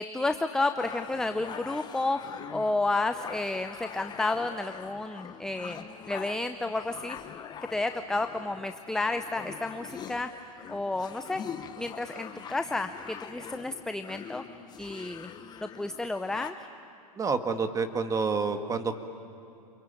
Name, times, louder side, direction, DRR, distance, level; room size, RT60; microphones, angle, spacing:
voice 1, 0.0-2.2 2.5-7.4 7.7-10.3 10.7-11.4 11.8-14.4 14.8-15.3 15.6-16.7, left 2 dB, 5° left, 8 dB, 0.6 m, -31 dB
sound 1, 0.8-16.5, left 8 dB, 20° left, 1.0 m, -44 dB
voice 2, 17.2-19.0, right 4 dB, 15° right, 7 dB, 1.7 m, -28 dB
27.0 x 23.0 x 9.1 m, 2.6 s
hypercardioid pair, 125°, 20 cm